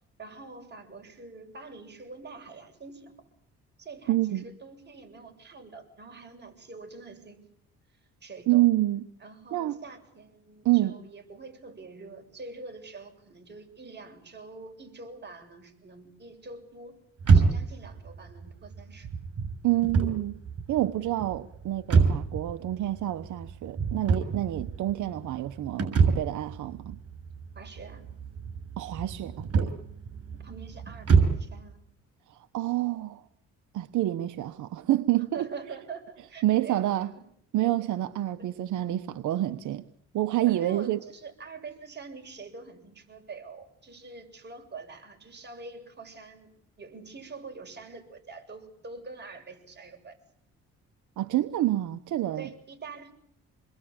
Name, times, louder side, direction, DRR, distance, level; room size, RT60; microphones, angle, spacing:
voice 1, 0.2-3.1 3.8-7.4 8.2-8.7 9.2-17.0 17.3-19.1 27.6-28.1 30.3-31.8 35.3-37.2 40.5-46.5 46.8-50.2 52.4-53.1, right 4 dB, 35° right, 7.7 m, -45 dB
voice 2, 4.1-4.5 8.5-9.1 9.5-9.8 10.6-11.0 19.6-20.4 20.7-27.0 28.8-29.7 32.3-33.2 33.7-35.5 36.4-37.1 37.5-39.9 40.1-41.0 51.2-52.5, right 15 dB, 75° right, 1.1 m, -28 dB
sound 1, 17.2-31.5, right 5 dB, 55° right, 6.7 m, -27 dB
28.0 x 21.5 x 8.8 m
cardioid pair, 90°, 30 cm